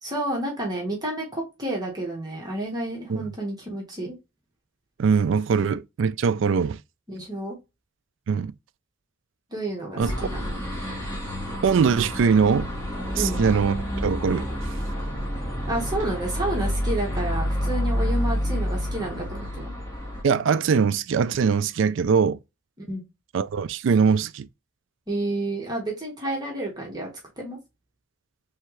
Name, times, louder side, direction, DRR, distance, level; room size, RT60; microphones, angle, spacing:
voice 1, 0.0-4.2 7.1-7.5 9.5-10.6 13.2-13.4 15.7-19.7 22.9-23.0 25.1-27.1 27.4-27.6, right 1 dB, 20° right, 1.3 m, -30 dB
voice 2, 5.0-6.8 8.3-8.5 10.0-10.1 11.6-12.7 13.1-13.8 14.0-14.5 20.2-22.4 23.3-24.5, right 6 dB, 65° right, 0.3 m, -22 dB
sound 1, 10.0-20.2, equal, 15° left, 1.8 m, -28 dB
3.6 x 3.3 x 3.1 m
head